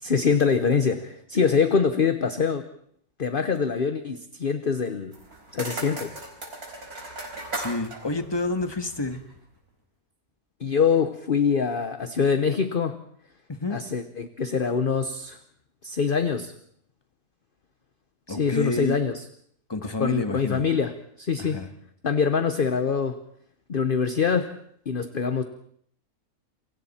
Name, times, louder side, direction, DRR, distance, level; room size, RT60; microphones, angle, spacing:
voice 1, 0.0-2.6 3.2-5.2 5.5-6.1 10.6-13.0 13.7-15.4 15.8-16.5 18.3-19.2 20.0-20.9 21.2-21.6 22.0-23.2 23.7-24.5 24.9-25.4, left 6 dB, 40° left, 9 dB, 1.1 m, -24 dB
sound 1, 5.1-9.3, right 2 dB, 75° right, 5.1 m, -37 dB
voice 2, 7.5-9.2 13.5-13.8 18.3-19.0 19.7-20.7 21.4-21.7, left 2 dB, 15° left, 7 dB, 1.6 m, -29 dB
28.0 x 24.0 x 4.4 m, 0.66 s
omnidirectional pair, 1.6 m